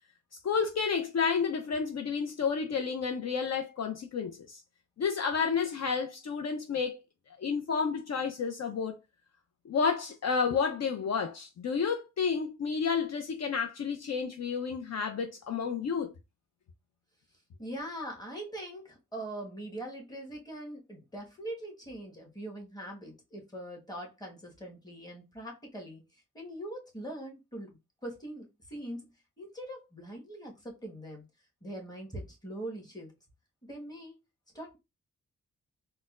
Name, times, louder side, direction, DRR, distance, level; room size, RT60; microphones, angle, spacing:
voice 1, 0.4-4.6 5.0-7.0 7.4-9.0 9.7-16.1, left 5 dB, 60° left, 0.6 m, -30 dB
voice 2, 17.6-26.0 26.3-27.8 28.0-29.1 29.4-31.2 31.6-33.1 33.6-34.1 34.5-34.8, right 1 dB, 15° left, 1.3 m, -42 dB
4.0 x 2.1 x 2.4 m
cardioid pair, 60°, 30 cm